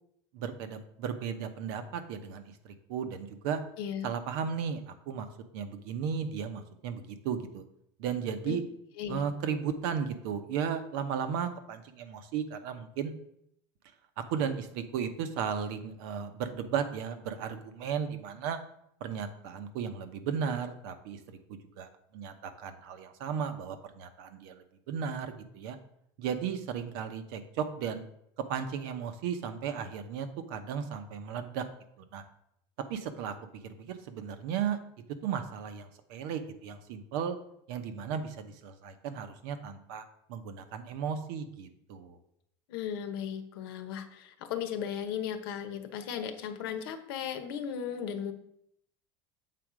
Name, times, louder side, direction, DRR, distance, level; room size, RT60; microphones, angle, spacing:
voice 1, 0.3-3.6 4.0-5.3 5.5-7.6 8.0-8.6 9.1-13.1 14.2-18.6 19.0-25.8 26.2-28.0 28.5-31.6 32.1-32.2 32.9-33.4 33.6-34.8 35.2-37.4 37.7-42.2, right 7 dB, 70° right, 8 dB, 0.9 m, -35 dB
voice 2, 3.8-4.1 8.5-8.6 9.0-9.2 42.7-48.3, left 8 dB, 85° left, 8 dB, 0.9 m, -36 dB
7.7 x 4.2 x 4.9 m, 0.73 s
supercardioid pair, 145°, 12 cm